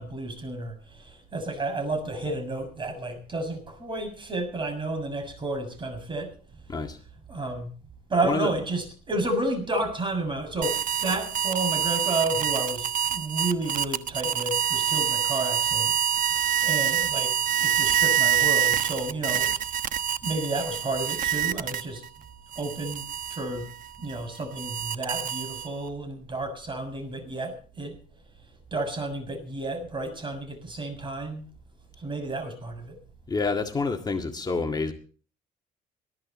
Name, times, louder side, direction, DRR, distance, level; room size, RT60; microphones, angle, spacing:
voice 1, 0.0-6.3 7.3-7.7 8.1-15.9 16.3-19.6 20.2-22.0 22.5-23.7 24.0-28.0 28.7-31.4 32.0-33.0, right 2 dB, 30° right, 8 dB, 6.9 m, -31 dB
voice 2, 8.2-8.5 33.3-34.9, left 3 dB, 25° left, 4 dB, 1.9 m, -28 dB
sound 1, 10.6-22.1 22.5-25.9, right 9 dB, 55° right, 1.2 m, -26 dB
20.5 x 13.0 x 4.3 m, 0.41 s
cardioid pair, 110°, 17 cm